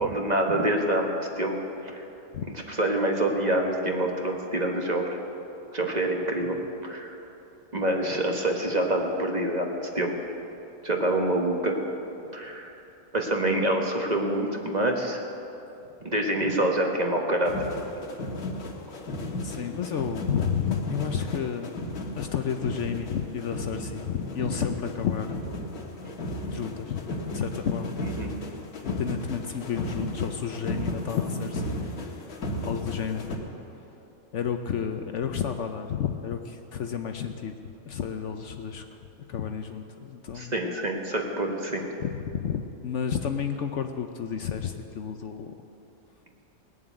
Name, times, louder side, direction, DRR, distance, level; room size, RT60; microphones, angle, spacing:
voice 1, 0.0-2.0 2.7-5.2 5.7-6.6 6.8-7.1 7.7-10.2 10.8-11.8 12.3-12.7 13.1-15.2 16.0-17.6 28.2-28.3 40.3-41.8, right 1 dB, 30° right, 1 dB, 1.4 m, -26 dB
sound 1, 17.4-33.4, left 1 dB, 80° left, 1.9 m, -35 dB
voice 2, 19.4-21.7 22.1-25.3 26.5-27.0 27.3-27.9 28.8-32.1 32.6-33.3 34.3-37.5 37.9-38.8 39.3-40.5 42.0-45.5, left 8 dB, 60° left, 6 dB, 0.9 m, -31 dB
19.0 x 7.4 x 9.0 m, 2.9 s
omnidirectional pair, 1.5 m